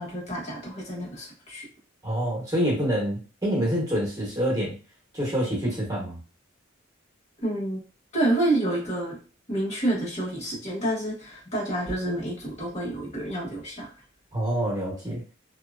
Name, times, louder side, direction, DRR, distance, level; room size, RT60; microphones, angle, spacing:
voice 1, 0.0-1.6 7.4-7.8 8.1-9.2 9.5-13.9, right 1 dB, 35° left, -4 dB, 1.2 m, -28 dB
voice 2, 2.0-4.7 5.1-6.2 14.3-15.2, equal, 20° right, -5 dB, 0.9 m, -26 dB
2.7 x 2.3 x 2.4 m, 0.36 s
head